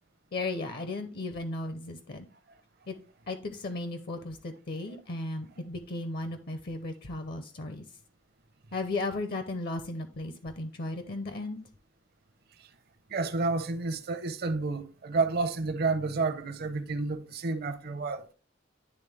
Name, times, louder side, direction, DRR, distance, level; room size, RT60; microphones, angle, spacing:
voice 1, 0.3-2.3 2.9-3.0 3.3-7.8 8.7-11.6, left 2 dB, 55° left, 0.6 m, -35 dB
voice 2, 13.1-18.3, right 3 dB, 55° right, 0.7 m, -30 dB
10.0 x 3.4 x 3.4 m
head